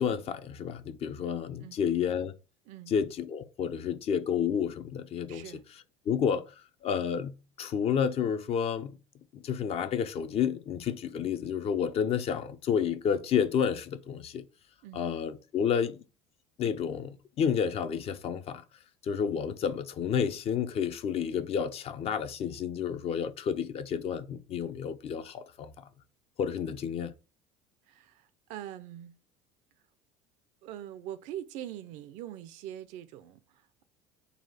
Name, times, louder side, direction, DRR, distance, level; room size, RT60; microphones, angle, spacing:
voice 1, 0.0-2.3 2.9-5.4 6.1-6.4 6.8-9.0 9.3-14.4 14.9-16.0 16.6-18.6 19.0-25.8 26.4-27.1, left 7 dB, 45° left, 0.5 m, -30 dB
voice 2, 5.3-5.6 14.8-15.1 27.9-29.2 30.6-33.8, right 12 dB, 60° right, 0.5 m, -43 dB
4.0 x 2.3 x 4.1 m
hypercardioid pair, 75°, 14 cm